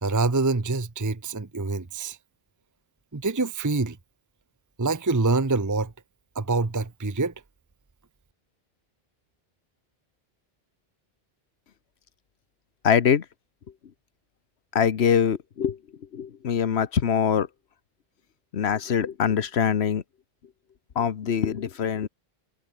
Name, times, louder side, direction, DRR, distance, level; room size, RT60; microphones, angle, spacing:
voice 1, 0.0-2.2 3.1-4.0 4.8-5.9 6.3-7.3, right 3 dB, 20° right, 0.9 m, -25 dB
voice 2, 12.8-13.2 14.7-15.8 16.1-17.5 18.5-20.0 21.0-22.1, left 7 dB, 85° left, 1.3 m, -23 dB
omnidirectional pair, 1.1 m